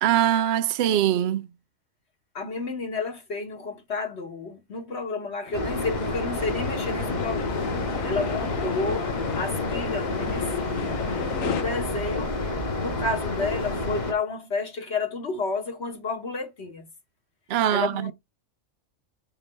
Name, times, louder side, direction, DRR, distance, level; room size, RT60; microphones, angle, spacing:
voice 1, 0.0-1.5 17.5-18.1, right 11 dB, 60° right, 0.7 m, -22 dB
voice 2, 2.3-7.6 8.0-9.1 9.4-10.5 11.4-12.4 12.8-16.9 17.7-18.1, left 3 dB, 55° left, 1.4 m, -31 dB
sound 1, 5.5-11.6, left 8 dB, 90° left, 1.2 m, -34 dB
sound 2, 5.5-14.1, left 2 dB, 35° left, 1.1 m, -29 dB
7.9 x 3.8 x 3.2 m
omnidirectional pair, 1.4 m